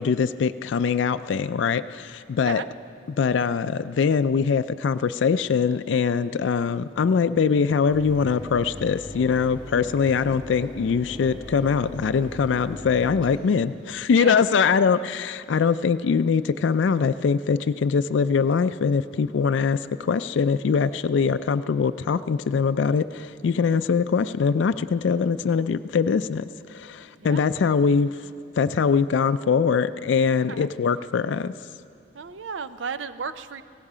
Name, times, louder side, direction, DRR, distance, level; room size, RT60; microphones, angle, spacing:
voice 1, 0.0-2.6 3.1-28.1 28.6-31.5, left 6 dB, 75° left, 12 dB, 0.4 m, -22 dB
Mechanisms, 7.9-13.4, equal, 25° right, 3.8 m, -39 dB
voice 2, 32.1-33.6, right 5 dB, 85° right, 12 dB, 0.6 m, -33 dB
17.0 x 16.0 x 5.0 m, 2.4 s
head